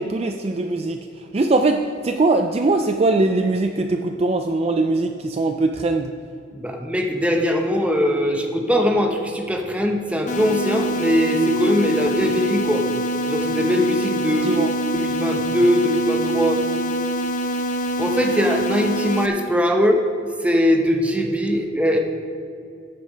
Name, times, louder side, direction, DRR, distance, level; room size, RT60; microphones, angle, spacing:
voice 1, 0.0-6.1 14.3-14.7, right 2 dB, 30° right, 5 dB, 0.4 m, -21 dB
voice 2, 6.5-12.8 13.3-14.6 14.9-16.6 18.0-20.0 20.4-22.0, equal, 5° right, 2 dB, 0.9 m, -21 dB
sound 1, 10.3-19.3, equal, 40° left, 0.7 m, -25 dB
13.5 x 6.7 x 5.1 m, 2.5 s
head